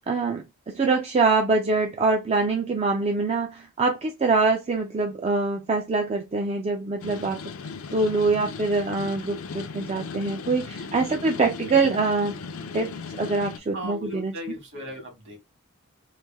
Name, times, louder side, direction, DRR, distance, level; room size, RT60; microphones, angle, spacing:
voice 1, 0.0-7.4 7.9-12.3 12.7-12.9 13.2-14.3, right 3 dB, 30° right, 0.3 m, -24 dB
sound 1, 7.0-13.6, left 5 dB, 70° left, 0.5 m, -37 dB
voice 2, 13.7-15.4, left 1 dB, 55° right, 1.5 m, -37 dB
3.2 x 2.6 x 3.4 m
head